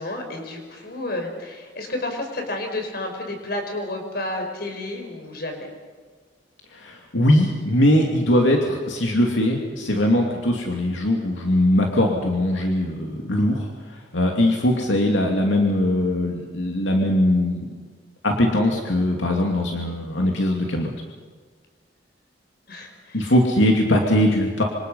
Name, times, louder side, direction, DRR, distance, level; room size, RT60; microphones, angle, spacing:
voice 1, 0.0-5.7 22.7-23.3, left 1 dB, 55° left, 4 dB, 5.2 m, -31 dB
voice 2, 6.7-13.7 14.1-17.6 18.2-20.9 23.1-24.6, left 1 dB, 85° left, 1 dB, 2.6 m, -20 dB
26.5 x 26.0 x 5.6 m, 1.5 s
head